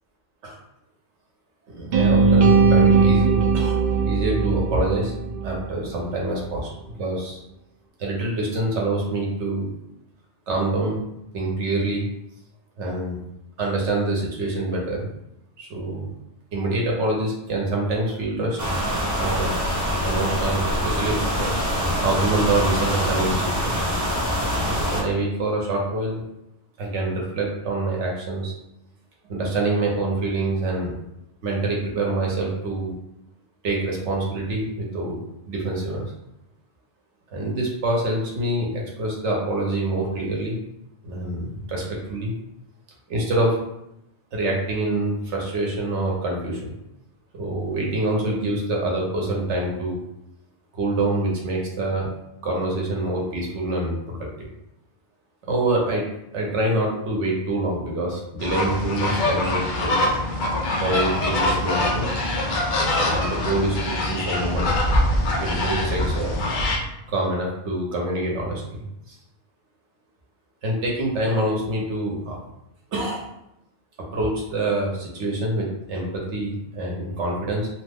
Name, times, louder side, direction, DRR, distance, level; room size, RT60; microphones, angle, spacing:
voice 1, 1.7-3.8 4.0-5.1 5.4-6.7 7.0-7.4 8.0-9.7 10.5-11.0 11.3-12.1 12.8-13.2 13.6-15.1 15.6-16.1 16.5-18.6 19.1-19.5 20.0-21.5 22.0-23.9 24.6-26.2 26.8-28.5 29.3-30.9 31.4-32.9 33.6-36.0 37.3-40.6 41.0-42.3 43.1-43.6 44.3-46.7 47.3-50.0 50.7-52.1 52.4-54.5 55.4-56.1 56.3-60.0 60.8-62.1 63.0-64.7 65.4-66.4 67.1-69.2 70.6-72.4 72.9-73.3 74.0-77.7, right 2 dB, 80° right, -1 dB, 1.1 m, -26 dB
sound 1, 1.9-6.0, right 4 dB, 60° right, 0.7 m, -19 dB
sound 2, 18.6-25.0, equal, 20° right, 0.6 m, -24 dB
sound 3, 58.4-66.8, left 1 dB, 55° left, 0.6 m, -23 dB
2.9 x 2.1 x 3.4 m, 0.84 s
omnidirectional pair, 1.2 m